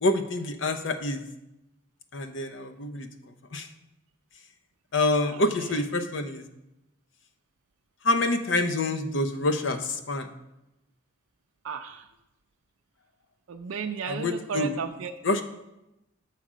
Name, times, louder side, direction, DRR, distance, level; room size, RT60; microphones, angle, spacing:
voice 1, 0.0-1.2 2.1-3.1 3.5-3.7 4.9-6.4 8.0-10.3 14.1-14.8 15.2-15.4, left 2 dB, 65° left, 7 dB, 0.7 m, -27 dB
voice 2, 11.6-12.1 13.5-15.4, right 6 dB, 90° right, 4 dB, 0.5 m, -34 dB
7.4 x 5.8 x 5.0 m, 0.90 s
head